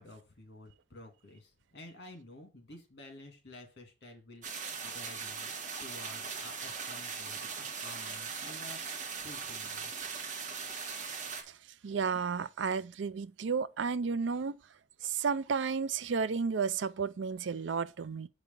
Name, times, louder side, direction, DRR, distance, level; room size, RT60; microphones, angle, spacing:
voice 1, 0.0-5.5 5.8-10.0, left 2 dB, 60° left, 2.0 m, -51 dB
sound 1, 4.4-11.4, right 5 dB, 40° right, 1.4 m, -40 dB
voice 2, 11.8-14.6 15.0-18.3, right 5 dB, 80° right, 0.5 m, -32 dB
6.8 x 5.1 x 5.2 m
head